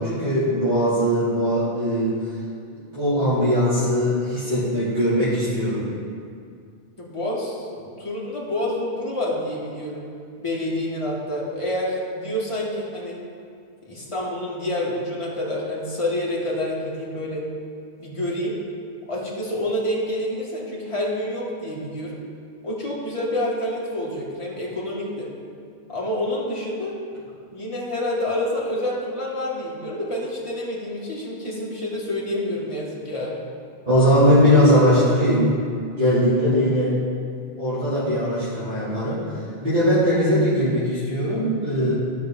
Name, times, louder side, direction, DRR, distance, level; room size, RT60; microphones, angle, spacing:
voice 1, 0.0-2.2 2.7-5.9 33.9-35.5 35.9-37.0 37.6-39.3 39.6-41.9, equal, 45° right, -15 dB, 3.0 m, -20 dB
voice 2, 7.0-10.1 10.4-13.2 13.8-17.5 18.0-18.6 19.1-22.2 22.6-25.3 25.9-27.0 27.5-33.4, left 1 dB, 30° left, -5 dB, 1.8 m, -28 dB
15.0 x 6.0 x 3.7 m, 2.3 s
omnidirectional pair, 1.1 m